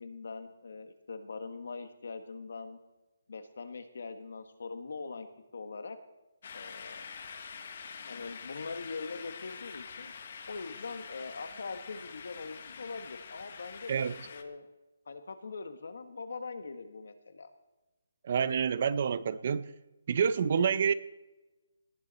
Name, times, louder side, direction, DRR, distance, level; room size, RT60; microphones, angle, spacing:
voice 1, 0.0-2.8 3.3-5.3 5.5-6.0 6.5-7.0 8.1-10.1 10.5-14.7 15.1-17.5, left 4 dB, 60° left, 8 dB, 1.5 m, -42 dB
sound 1, 6.4-14.4, left 6 dB, 40° left, 1.1 m, -46 dB
voice 2, 18.2-19.7 20.1-20.9, right 7 dB, 35° right, 15 dB, 0.5 m, -28 dB
18.5 x 10.5 x 4.2 m, 1.1 s
hypercardioid pair, 175°, 0 cm